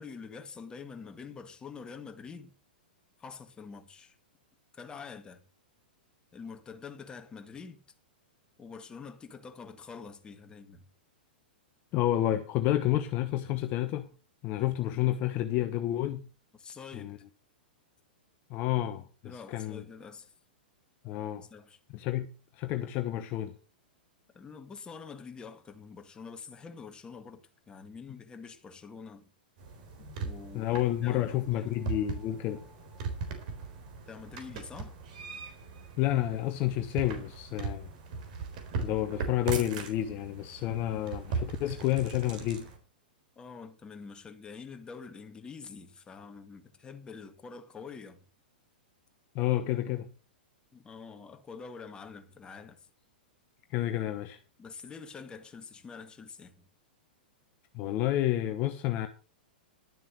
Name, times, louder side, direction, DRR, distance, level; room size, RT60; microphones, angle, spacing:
voice 1, 0.0-2.5 3.2-4.2 4.7-5.4 6.3-7.8 8.6-10.8 16.5-17.1 19.2-20.3 21.5-21.8 24.3-29.3 30.2-31.7 34.1-35.0 43.4-48.3 50.7-52.8 54.6-56.7, left 5 dB, 15° left, 1.9 m, -46 dB
voice 2, 11.9-14.1 14.4-16.2 16.9-17.2 18.5-19.8 21.0-21.5 21.9-23.5 30.0-30.2 30.5-32.6 36.0-37.9 38.8-42.7 49.3-50.1 53.7-54.4 57.7-59.1, left 13 dB, 35° left, 1.1 m, -30 dB
sound 1, 29.6-42.8, right 4 dB, 55° right, 3.9 m, -39 dB
12.0 x 7.4 x 6.5 m
figure-of-eight pair, 105°, 5 cm